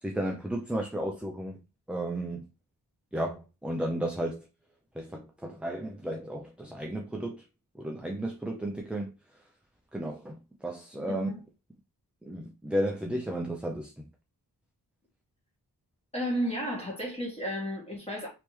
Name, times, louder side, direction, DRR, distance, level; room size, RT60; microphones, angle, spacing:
voice 1, 0.0-1.6 1.9-2.5 3.1-4.5 4.9-7.4 7.7-9.4 9.9-11.3 12.2-14.1, right 1 dB, 5° right, 0.4 m, -33 dB
voice 2, 11.1-11.4 16.1-18.3, equal, 15° left, 1.6 m, -33 dB
3.3 x 2.9 x 3.1 m
wide cardioid pair, 105°, 41 cm